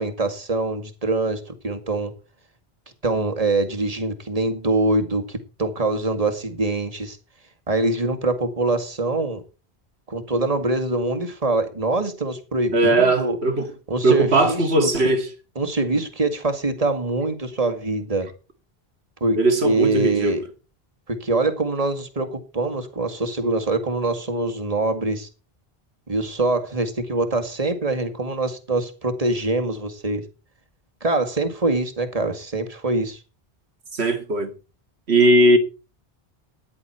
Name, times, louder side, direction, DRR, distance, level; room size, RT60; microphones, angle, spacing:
voice 1, 0.0-2.1 3.0-7.2 7.7-9.4 10.1-13.4 13.9-15.1 15.6-18.3 19.2-20.4 21.1-25.3 26.1-30.2 31.0-33.2, right 2 dB, 35° right, 2.1 m, -24 dB
voice 2, 12.7-13.7 14.0-15.3 19.4-20.4 33.9-34.5 35.1-35.6, right 2 dB, 85° right, 2.3 m, -18 dB
14.5 x 10.5 x 4.4 m
omnidirectional pair, 1.0 m